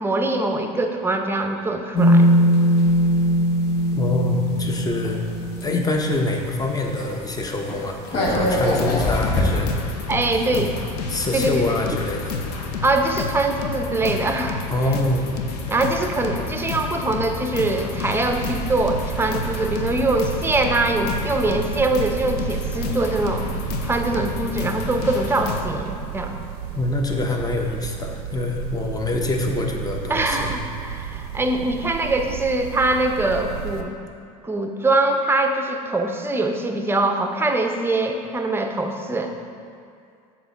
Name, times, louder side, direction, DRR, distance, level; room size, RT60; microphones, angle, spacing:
voice 1, 0.0-2.3 10.1-10.7 11.3-11.8 12.8-14.6 15.7-23.5 23.8-26.3 30.1-33.9 34.4-39.3, right 2 dB, 10° right, 5 dB, 0.6 m, -23 dB
sound 1, 2.0-6.6 7.0-7.1 7.4-9.6, equal, 60° left, 1.3 m, -20 dB
voice 2, 4.0-5.2 5.6-9.7 10.5-10.7 11.1-12.4 14.7-15.2 26.7-30.5, left 2 dB, 20° left, 2 dB, 0.9 m, -25 dB
sound 2, 8.2-25.6, left 4 dB, 85° left, 0.7 m, -30 dB
sound 3, 18.3-33.8, right 10 dB, 80° right, 0.5 m, -33 dB
7.5 x 3.1 x 5.9 m, 2.3 s
hypercardioid pair, 85°, 20 cm